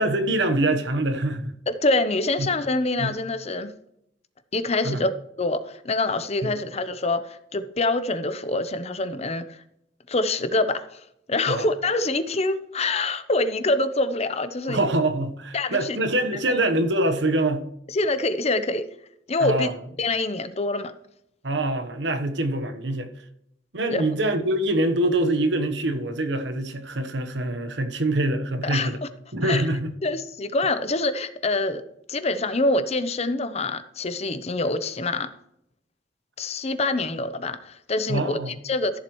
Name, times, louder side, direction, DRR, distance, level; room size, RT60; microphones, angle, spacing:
voice 1, 0.0-1.5 2.4-2.5 3.0-3.1 4.8-5.0 6.4-6.5 11.5-11.7 14.7-17.6 19.4-19.7 21.4-23.1 23.7-29.0 29.3-29.9 38.1-38.5, right 1 dB, 75° right, 1.1 m, -24 dB
voice 2, 1.7-3.7 4.5-5.1 5.4-9.6 10.1-11.0 11.3-14.8 15.5-16.0 17.9-18.9 19.3-19.7 20.0-20.9 23.9-24.0 28.6-28.9 29.4-29.6 30.0-31.8 32.1-35.3 36.4-39.0, left 2 dB, 35° left, 0.7 m, -25 dB
14.0 x 7.4 x 3.1 m
head